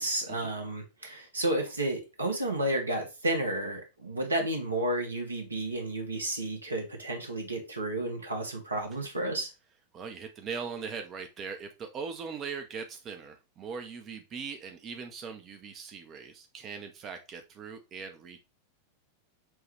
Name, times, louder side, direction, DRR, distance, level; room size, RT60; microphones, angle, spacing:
voice 1, 0.0-9.5, right 1 dB, 80° right, 1.1 m, -31 dB
voice 2, 9.9-18.4, right 5 dB, 30° right, 0.6 m, -40 dB
6.1 x 2.3 x 3.2 m
figure-of-eight pair, 90°, 0 cm